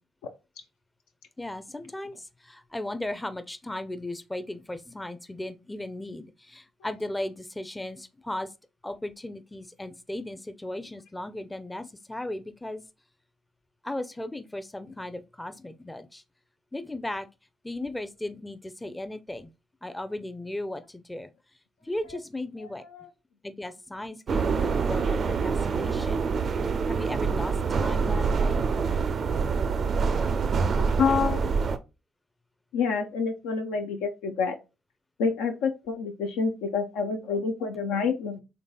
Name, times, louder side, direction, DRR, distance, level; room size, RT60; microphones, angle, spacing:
voice 1, 1.4-8.5 8.8-12.8 13.8-16.2 16.7-17.3 17.6-19.5 19.8-21.3 21.8-22.8 23.4-26.3 26.9-28.7, left 1 dB, 15° left, 0.5 m, -36 dB
sound 1, 24.3-31.8, right 5 dB, 50° right, 0.4 m, -26 dB
voice 2, 30.8-31.5 32.7-34.6 35.2-38.4, left 5 dB, 75° left, 0.5 m, -28 dB
3.9 x 3.3 x 2.2 m
hypercardioid pair, 45°, 0 cm